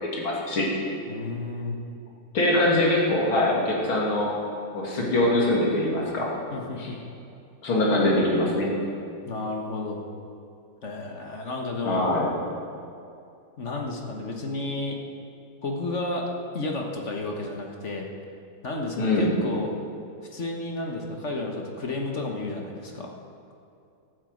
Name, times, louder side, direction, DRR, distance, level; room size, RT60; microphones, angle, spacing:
voice 1, 0.1-0.7 2.3-4.4 4.7-6.3 6.8-6.9 7.6-8.7 11.9-12.3 19.0-19.3, left 1 dB, 80° left, -3 dB, 3.4 m, -23 dB
voice 2, 1.1-1.8 6.5-7.0 9.3-10.0 10.8-12.1 13.6-15.0 15.6-16.3 16.5-18.1 18.6-19.7 20.3-23.1, left 2 dB, 40° left, 1 dB, 1.5 m, -32 dB
13.0 x 9.1 x 7.9 m, 2.5 s
omnidirectional pair, 2.3 m